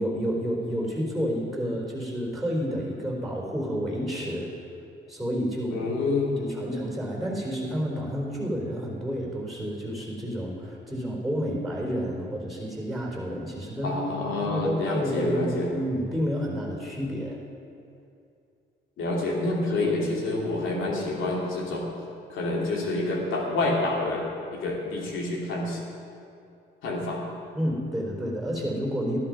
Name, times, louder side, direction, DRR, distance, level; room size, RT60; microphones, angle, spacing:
voice 1, 0.0-4.5 5.1-5.8 6.4-14.0 14.4-17.4 27.5-29.2, equal, ahead, -2 dB, 4.1 m, -30 dB
voice 2, 5.7-6.3 13.8-15.7 19.0-21.9 22.3-24.3 24.5-25.8 26.8-27.2, left 2 dB, 80° left, -1 dB, 2.7 m, -27 dB
13.5 x 11.5 x 5.3 m, 2.5 s
cardioid pair, 90°, 20 cm